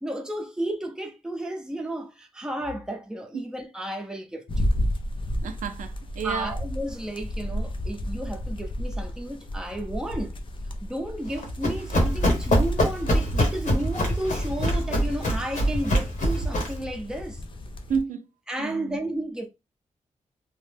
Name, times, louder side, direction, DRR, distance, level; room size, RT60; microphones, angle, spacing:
voice 1, 0.0-4.7 6.2-10.4 10.8-17.4 18.5-19.5, right 1 dB, 5° right, 0.6 m, -33 dB
sound 1, 4.5-18.0, equal, 40° left, 0.5 m, -33 dB
voice 2, 5.4-6.6 17.9-18.3 18.6-19.0, right 6 dB, 85° right, 0.4 m, -31 dB
Run, 11.3-16.8, equal, 75° left, 1.2 m, -24 dB
2.8 x 2.1 x 3.3 m
wide cardioid pair, 125°, 13 cm